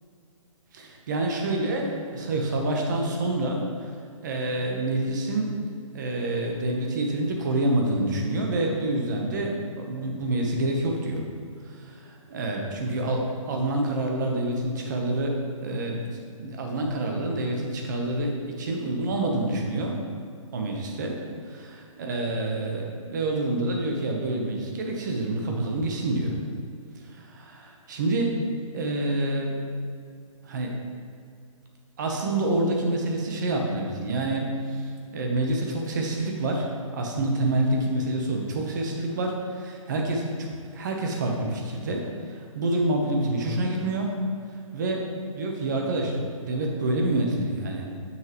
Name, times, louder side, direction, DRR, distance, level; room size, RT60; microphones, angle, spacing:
voice 1, 0.7-3.9 4.2-5.6 5.9-11.2 11.6-16.0 16.4-20.0 20.5-21.2 22.0-26.3 27.0-28.4 28.7-29.6 30.4-30.8 32.0-36.7 36.9-44.1 44.7-47.9, right 2 dB, 35° right, 1 dB, 0.9 m, -27 dB
7.4 x 6.4 x 3.0 m, 2.3 s
hypercardioid pair, 170°, 18 cm